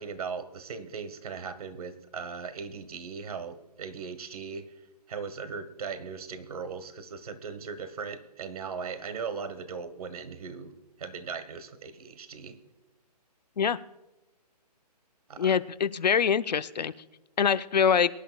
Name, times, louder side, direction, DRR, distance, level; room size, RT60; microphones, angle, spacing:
voice 1, 0.0-4.7 5.1-10.7 11.0-12.6 15.3-15.6, right 5 dB, 60° right, 13 dB, 1.2 m, -38 dB
voice 2, 15.4-16.9 17.4-18.1, left 7 dB, 80° left, 13 dB, 0.6 m, -24 dB
23.0 x 11.0 x 2.3 m, 1.0 s
hypercardioid pair, 160°, 21 cm